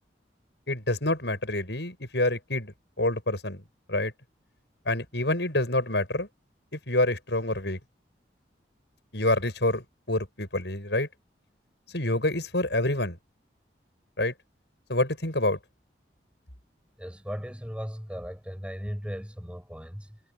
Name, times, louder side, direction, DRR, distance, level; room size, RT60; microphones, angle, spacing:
voice 1, 0.7-3.6 3.9-4.1 4.9-6.3 6.7-7.8 9.1-11.1 11.9-13.2 14.2-14.3 14.9-15.6, left 1 dB, 70° left, 7.8 m, -27 dB
voice 2, 17.0-20.2, equal, 5° right, 7.5 m, -37 dB
head